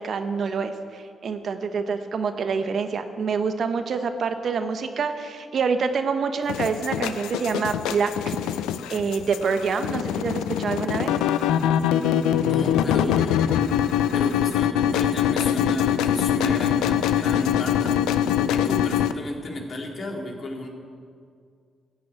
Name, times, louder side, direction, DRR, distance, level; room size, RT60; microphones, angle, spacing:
voice 1, 0.0-8.6 8.9-11.1, right 5 dB, 65° right, 8 dB, 1.0 m, -26 dB
sound 1, 6.5-19.1, left 10 dB, 85° left, 0.4 m, -23 dB
voice 2, 12.4-13.4 14.1-18.0 18.4-20.7, left 1 dB, 55° left, 1 dB, 2.2 m, -32 dB
14.5 x 6.2 x 8.6 m, 2.2 s
supercardioid pair, 55°, 0 cm